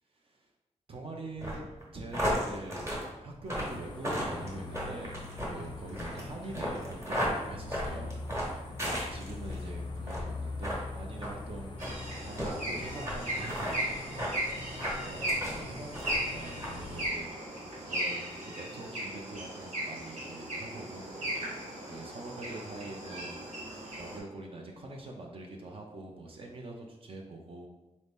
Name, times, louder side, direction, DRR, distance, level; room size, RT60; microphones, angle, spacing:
voice 1, 0.9-1.7 1.9-2.9 3.2-8.1 8.7-14.7 15.0-17.4 17.9-21.1 21.6-23.4 23.9-27.7, right 2 dB, 50° right, 1 dB, 0.5 m, -44 dB
sound 1, 1.4-9.6 10.0-10.3 10.6-10.8 11.2-11.3 11.8-12.0 12.4-12.5 13.1-13.2 13.4-13.8 14.2-14.4 14.8-15.6 15.9-16.3 16.6-16.7, equal, 25° right, 1.1 m, -34 dB
sound 2, 3.5-17.1, left 3 dB, 40° left, 0.5 m, -43 dB
sound 3, 11.8-24.2, right 1 dB, 85° right, 1.3 m, -37 dB
4.0 x 2.7 x 3.5 m, 1.0 s
wide cardioid pair, 170°, 12 cm